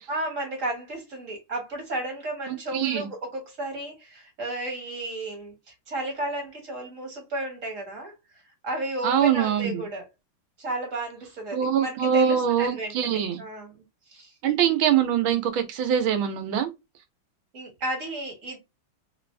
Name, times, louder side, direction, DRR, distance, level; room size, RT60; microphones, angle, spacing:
voice 1, 0.1-8.1 8.6-10.1 10.6-13.8 14.1-14.3 17.5-18.6, right 1 dB, 40° right, 1.9 m, -33 dB
voice 2, 2.5-3.1 9.0-9.8 11.5-13.4 14.4-16.7, right 8 dB, 80° right, 1.6 m, -23 dB
3.9 x 2.5 x 3.2 m
omnidirectional pair, 2.2 m